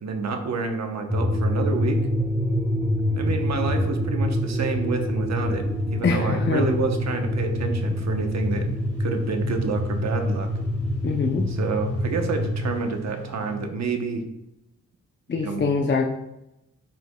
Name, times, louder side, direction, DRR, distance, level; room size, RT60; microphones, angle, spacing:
voice 1, 0.0-2.0 3.1-8.7 9.0-10.5 11.4-14.2 15.3-15.6, right 4 dB, 65° right, 5 dB, 1.0 m, -28 dB
sound 1, 1.1-12.7, left 1 dB, 15° right, 1.7 m, -26 dB
sound 2, 5.3-13.5, right 8 dB, 85° left, 2.2 m, -41 dB
voice 2, 6.0-6.6 11.0-11.5 15.3-16.1, left 5 dB, 40° left, 1 dB, 0.7 m, -24 dB
10.5 x 5.1 x 2.3 m, 0.88 s
cardioid pair, 85°, 29 cm